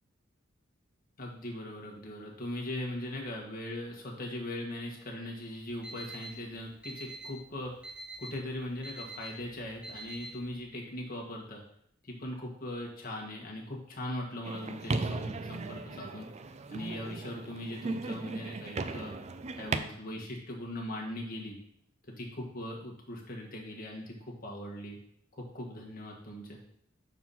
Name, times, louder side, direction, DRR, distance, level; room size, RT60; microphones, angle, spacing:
voice 1, 1.2-7.7 8.2-11.6 12.0-16.3 16.7-19.1 19.6-21.6 22.1-25.0 25.3-26.6, left 1 dB, 45° left, -1 dB, 1.6 m, -40 dB
Alarm, 5.6-10.6, right 1 dB, 5° right, 0.8 m, -46 dB
sound 1, 14.4-19.8, right 3 dB, 35° right, 0.4 m, -37 dB
5.6 x 4.6 x 5.6 m, 0.68 s
head